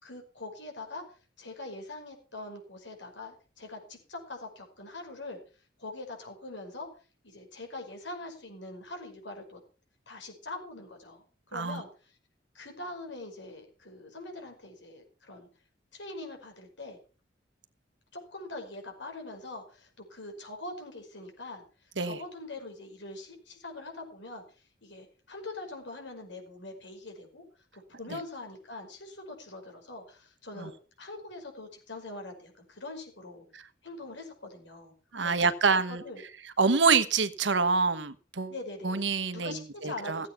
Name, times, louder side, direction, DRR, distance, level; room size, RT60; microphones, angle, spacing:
voice 1, 0.0-1.0 1.4-5.4 5.8-6.9 7.2-9.6 10.1-12.1 12.5-15.5 15.9-17.0 18.1-21.6 22.0-24.4 24.8-27.4 27.7-33.4 33.8-35.3 35.7-36.2 38.5-39.0 39.3-40.3, left 2 dB, 75° left, 4 dB, 5.4 m, -43 dB
voice 2, 11.5-11.8 22.0-22.2 28.1-28.2 30.6-30.7 33.5-33.6 35.1-36.0 36.6-38.5 38.8-40.3, right 4 dB, 75° right, 12 dB, 1.2 m, -26 dB
15.5 x 8.5 x 5.8 m, 0.37 s
head